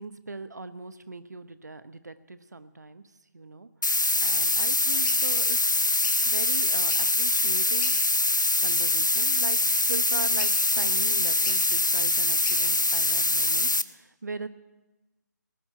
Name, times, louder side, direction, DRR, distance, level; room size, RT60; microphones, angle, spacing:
voice 1, 0.0-3.0 3.3-3.7 4.2-5.6 6.2-8.0 8.6-9.6 9.9-14.5, right 3 dB, 65° right, 12 dB, 1.0 m, -39 dB
sound 1, 3.8-13.8, left 2 dB, 85° left, 0.6 m, -24 dB
sound 2, 5.0-5.2 6.0-6.2 6.8-7.2 7.8-8.0 8.5-8.7 10.4-10.8 11.4-11.6 12.4-12.6, left 5 dB, 20° left, 1.4 m, -39 dB
18.0 x 7.2 x 9.8 m, 1.1 s
figure-of-eight pair, 150°, 10 cm